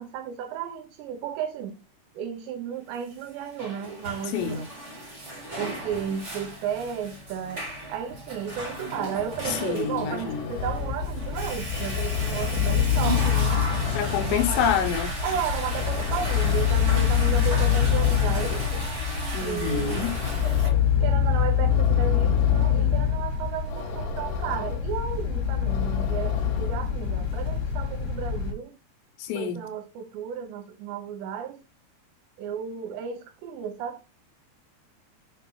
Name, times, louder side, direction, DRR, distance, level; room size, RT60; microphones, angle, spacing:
voice 1, 0.0-1.7 2.1-4.7 5.6-13.6 14.2-14.6 15.2-18.6 19.4-20.2 21.0-28.7 29.3-31.6 32.4-34.0, right 8 dB, 85° right, 3.2 m, -33 dB
Water / Toilet flush, 3.2-20.7, right 1 dB, 70° right, 0.6 m, -36 dB
voice 2, 4.3-4.7 9.5-10.5 13.9-15.1 19.3-20.2 29.2-29.7, left 8 dB, 85° left, 2.9 m, -27 dB
sound 1, 9.7-27.0, left 6 dB, 70° left, 2.6 m, -40 dB
sound 2, 10.6-28.5, left 8 dB, 50° left, 2.5 m, -25 dB
6.5 x 5.3 x 3.0 m
omnidirectional pair, 5.0 m